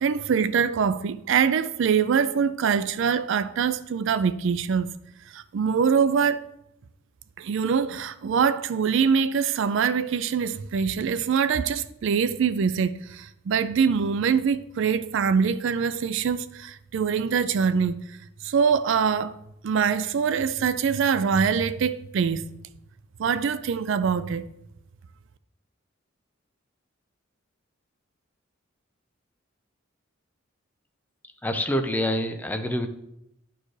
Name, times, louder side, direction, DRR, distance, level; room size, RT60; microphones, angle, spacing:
voice 1, 0.0-4.9 5.3-6.4 7.4-18.0 18.4-19.4 19.6-22.4 23.2-24.4, right 6 dB, 65° right, 0.4 m, -24 dB
voice 2, 31.4-32.9, equal, 10° left, 0.5 m, -26 dB
11.5 x 4.4 x 3.2 m
head